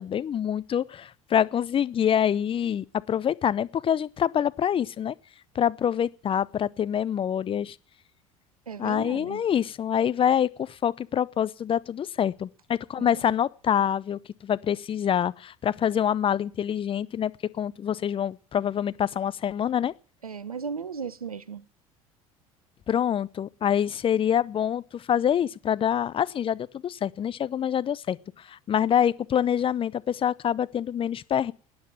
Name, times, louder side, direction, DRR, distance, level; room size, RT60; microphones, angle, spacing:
voice 1, 0.0-5.1 5.5-7.8 8.8-19.9 22.9-31.5, left 9 dB, 30° left, 0.7 m, -26 dB
voice 2, 8.7-9.4 13.0-13.3 20.2-21.6, right 6 dB, 85° right, 0.6 m, -36 dB
17.5 x 9.6 x 7.2 m
figure-of-eight pair, 65°, 18 cm